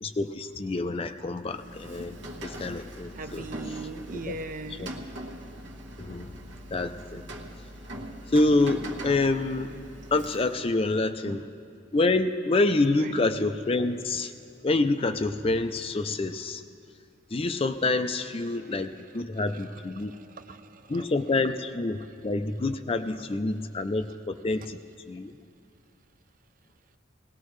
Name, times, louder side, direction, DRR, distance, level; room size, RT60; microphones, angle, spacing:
voice 1, 0.0-2.2 2.4-3.5 4.3-4.4 4.8-4.9 6.0-6.4 6.7-7.2 8.3-9.8 10.1-11.4 11.9-14.3 14.6-16.6 17.3-20.1 20.9-24.8 25.1-25.3, left 2 dB, 30° left, 9 dB, 0.4 m, -27 dB
Rain, 1.4-10.7, right 1 dB, 70° right, 1.1 m, -41 dB
voice 2, 3.1-4.9 11.3-11.4 13.0-13.3 20.0-21.1 24.6-24.7, right 2 dB, 45° right, 10 dB, 0.5 m, -39 dB
19.5 x 18.0 x 3.2 m, 2.4 s
head